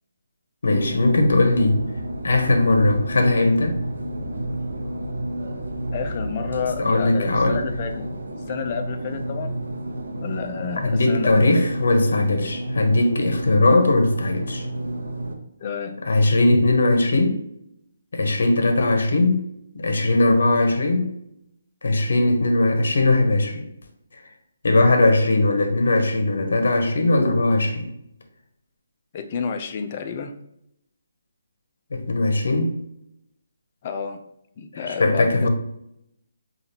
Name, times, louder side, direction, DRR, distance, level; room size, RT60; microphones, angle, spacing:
voice 1, 0.6-1.8 2.2-3.8 6.8-7.6 10.8-14.7 16.0-17.4 18.1-19.5 19.7-21.1 21.8-23.7 24.6-27.9 31.9-32.7 34.7-35.5, left 2 dB, 70° left, 4 dB, 0.8 m, -19 dB
sound 1, 0.6-15.3, right 1 dB, 85° right, 0.7 m, -31 dB
voice 2, 5.9-8.1 8.5-9.6 10.2-11.7 15.6-16.0 29.1-30.3 33.8-34.2 34.6-35.5, left 6 dB, 35° left, 6 dB, 0.4 m, -30 dB
4.9 x 2.4 x 2.8 m, 0.78 s
hypercardioid pair, 160°, 0 cm